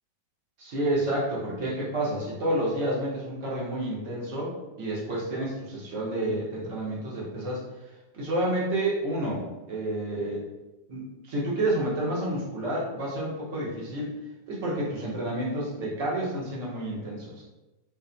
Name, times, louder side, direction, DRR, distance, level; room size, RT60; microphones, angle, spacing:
voice 1, 0.6-7.6 8.1-10.4 10.9-14.1 14.5-17.4, right 1 dB, 50° right, -5 dB, 0.9 m, -29 dB
2.5 x 2.4 x 2.2 m, 1.1 s
figure-of-eight pair, 90°, 0 cm